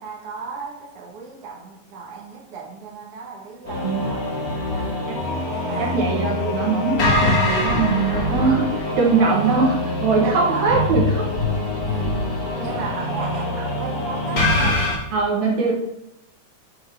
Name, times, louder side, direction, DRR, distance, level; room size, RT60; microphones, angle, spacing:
voice 1, 0.0-5.0 5.5-6.0 9.4-9.7 10.2-10.9 11.8-12.3 12.6-14.8, right 4 dB, 55° right, -3 dB, 2.3 m, -35 dB
sound 1, 3.7-15.0, left 2 dB, 30° left, 2.2 m, -24 dB
voice 2, 5.8-11.2 15.1-15.7, right 4 dB, 70° right, -2 dB, 3.0 m, -21 dB
8.8 x 4.7 x 6.1 m, 0.86 s
omnidirectional pair, 3.5 m